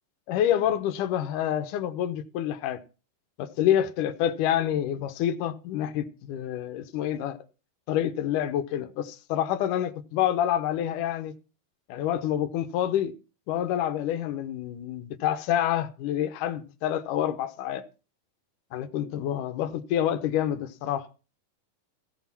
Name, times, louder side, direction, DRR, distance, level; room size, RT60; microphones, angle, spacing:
voice 1, 0.3-2.8 3.4-7.4 7.9-11.3 11.9-13.1 13.5-17.8 18.7-21.1, left 11 dB, 75° left, 2.4 m, -27 dB
16.0 x 6.7 x 5.9 m
omnidirectional pair, 3.9 m